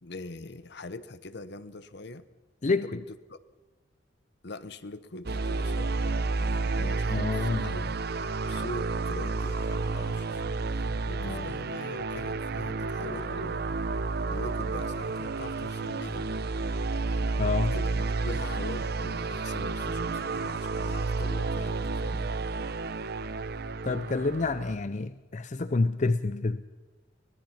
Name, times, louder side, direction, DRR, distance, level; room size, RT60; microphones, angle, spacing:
voice 1, 0.0-2.3 2.7-3.0 3.3-3.4 4.4-8.0 8.4-13.7 14.3-16.3 17.6-22.3, left 2 dB, 65° left, 1.0 m, -42 dB
voice 2, 2.6-3.0 7.1-7.8 11.2-11.5 17.4-17.8 23.8-26.6, left 3 dB, 40° left, 0.6 m, -28 dB
sound 1, 5.3-24.7, right 3 dB, 60° right, 0.8 m, -31 dB
24.5 x 18.5 x 5.8 m
head